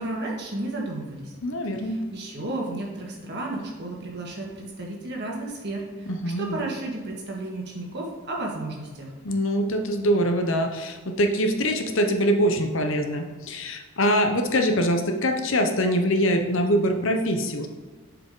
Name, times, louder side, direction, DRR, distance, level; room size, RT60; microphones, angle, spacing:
voice 1, 0.0-1.3 1.7-6.1 6.4-9.1, right 2 dB, 50° right, -1 dB, 1.6 m, -33 dB
voice 2, 1.4-2.0 6.1-6.6 9.2-17.7, equal, 60° left, 5 dB, 0.8 m, -23 dB
7.7 x 5.0 x 3.8 m, 1.4 s
head